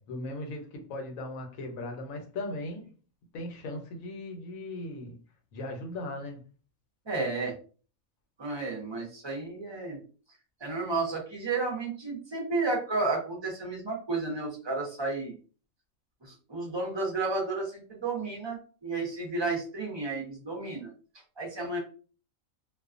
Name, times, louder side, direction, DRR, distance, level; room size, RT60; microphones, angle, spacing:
voice 1, 0.0-2.9 3.3-5.2 5.5-6.4, left 2 dB, 75° left, 1.1 m, -38 dB
voice 2, 7.1-7.5 8.4-10.0 10.6-15.3 16.2-20.9 21.4-21.8, right 3 dB, 30° right, 0.5 m, -32 dB
2.4 x 2.3 x 2.4 m
omnidirectional pair, 1.5 m